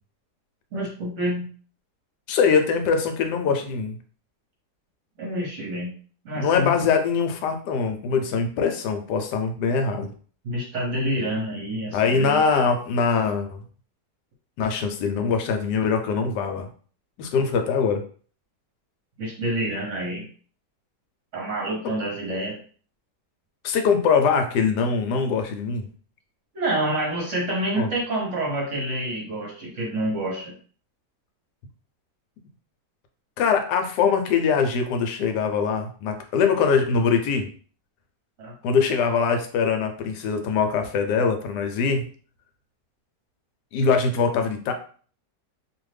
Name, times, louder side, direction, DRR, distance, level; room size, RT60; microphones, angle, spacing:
voice 1, 0.7-1.5 5.2-5.9 6.2-6.7 10.4-12.4 19.2-20.3 21.3-22.6 26.5-30.5 38.4-38.5, right 1 dB, 55° right, -2 dB, 1.0 m, -27 dB
voice 2, 2.3-3.9 6.3-10.1 11.9-13.6 14.6-16.7 17.2-18.0 23.6-25.9 27.8-27.9 33.4-37.5 38.6-42.0 43.7-44.7, left 5 dB, 80° left, 6 dB, 1.2 m, -22 dB
2.6 x 2.4 x 3.2 m, 0.43 s
omnidirectional pair, 1.8 m